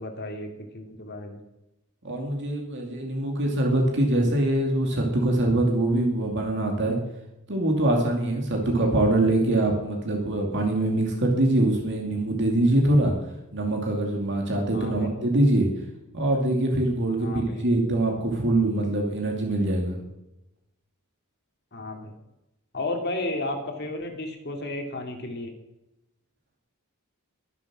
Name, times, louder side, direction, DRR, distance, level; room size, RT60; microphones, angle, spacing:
voice 1, 0.0-1.4 8.7-9.0 14.7-15.1 17.2-17.7 21.7-22.1 22.7-25.5, left 2 dB, 50° left, 3 dB, 2.5 m, -33 dB
voice 2, 2.0-7.0 7.5-13.1 13.5-15.7 16.1-20.0, right 1 dB, 55° right, 0 dB, 2.5 m, -23 dB
22.0 x 7.4 x 6.2 m, 0.91 s
head